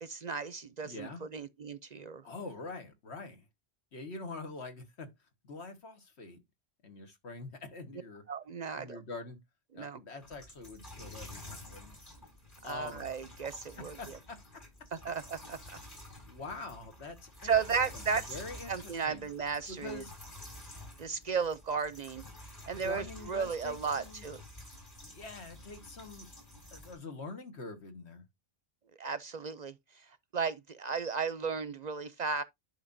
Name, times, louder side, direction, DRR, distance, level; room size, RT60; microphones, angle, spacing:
voice 1, 0.0-2.2 8.3-9.0 9.7-10.0 12.6-14.2 14.9-15.6 17.4-18.4 18.7-20.0 21.0-22.2 22.7-24.4 29.0-32.4, right 6 dB, 50° right, 0.5 m, -35 dB
voice 2, 0.8-1.2 2.2-3.5 3.9-5.1 5.4-6.4 6.8-8.2 8.7-9.4 9.7-12.0 12.6-13.1 14.0-14.4 16.3-17.5 17.9-19.3 19.7-20.1 22.8-24.3 25.0-26.3 26.7-28.2, left 3 dB, 85° left, 1.7 m, -45 dB
sound 1, 10.2-27.0, left 1 dB, 50° left, 4.3 m, -50 dB
11.0 x 5.1 x 2.6 m
omnidirectional pair, 1.1 m